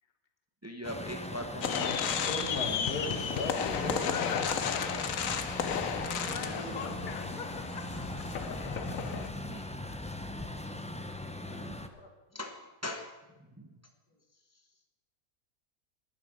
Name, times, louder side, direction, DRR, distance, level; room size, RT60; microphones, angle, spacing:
voice 1, 0.6-2.1 9.4-9.7 11.6-11.8 12.3-13.8, left 1 dB, 10° right, 4 dB, 1.0 m, -41 dB
Truck, 0.8-11.9, left 1 dB, 10° left, 0.5 m, -39 dB
sound 1, 1.6-9.3, left 7 dB, 65° left, 1.2 m, -33 dB
voice 2, 2.2-4.5 6.0-7.0 11.5-12.1, left 2 dB, 85° left, 3 dB, 2.5 m, -39 dB
voice 3, 3.7-8.5 9.0-9.1, left 6 dB, 35° left, 7 dB, 1.2 m, -43 dB
11.0 x 11.0 x 6.8 m, 1.1 s
omnidirectional pair, 1.6 m